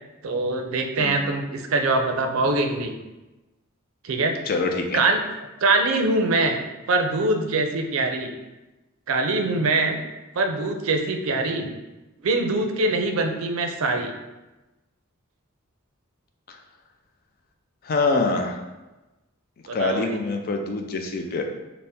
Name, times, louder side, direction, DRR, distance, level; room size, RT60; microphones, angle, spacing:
voice 1, 0.2-3.0 4.0-4.4 4.9-5.2 5.6-6.6 6.9-8.3 9.1-10.0 10.4-11.7 12.2-14.1 19.7-20.2, right 2 dB, 70° right, 4 dB, 0.5 m, -23 dB
voice 2, 4.5-5.0 16.5-16.6 17.8-18.6 19.7-21.4, left 3 dB, 45° left, 4 dB, 0.4 m, -25 dB
3.4 x 2.1 x 4.1 m, 1.1 s
head